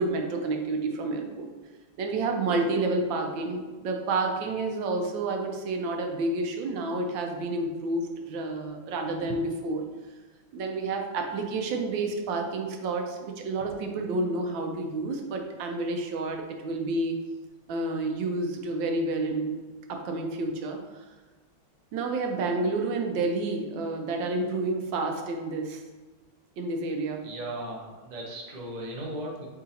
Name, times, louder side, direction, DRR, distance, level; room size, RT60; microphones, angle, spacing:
voice 1, 0.0-1.5 2.0-9.9 10.5-17.2 17.7-19.6 19.9-21.1 21.9-25.8 26.6-27.3, right 2 dB, 75° right, 3 dB, 1.3 m, -29 dB
voice 2, 27.2-29.5, right 1 dB, 60° right, -3 dB, 0.4 m, -37 dB
4.7 x 3.8 x 2.8 m, 1.2 s
omnidirectional pair, 2.1 m